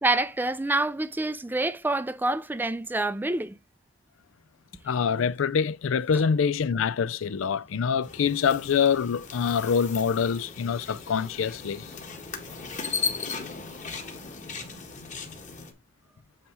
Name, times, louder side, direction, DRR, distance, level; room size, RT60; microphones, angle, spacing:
voice 1, 0.0-3.6, right 2 dB, 10° right, 0.4 m, -27 dB
voice 2, 4.8-11.9, left 6 dB, 75° left, 0.4 m, -25 dB
sound 1, 8.0-15.7, left 5 dB, 40° left, 1.5 m, -37 dB
8.7 x 3.0 x 4.7 m
head